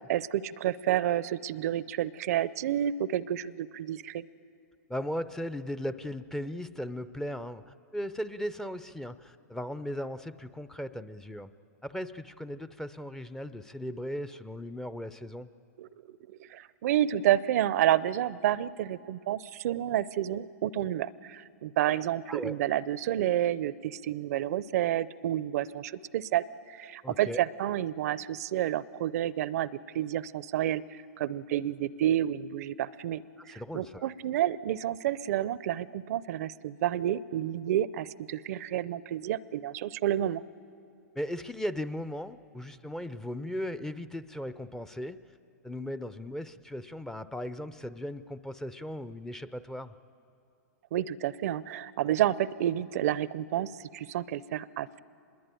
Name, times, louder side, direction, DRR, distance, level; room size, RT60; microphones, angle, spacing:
voice 1, 0.1-4.2 15.8-15.9 16.3-29.7 29.9-40.4 50.9-55.0, right 12 dB, 60° right, 19 dB, 0.6 m, -30 dB
voice 2, 4.9-11.5 11.8-15.5 22.3-22.6 27.0-27.4 33.4-34.1 41.1-45.2 45.6-49.9, equal, 5° left, 14 dB, 0.5 m, -37 dB
25.5 x 21.0 x 9.0 m, 2.5 s
hypercardioid pair, 125°, 9 cm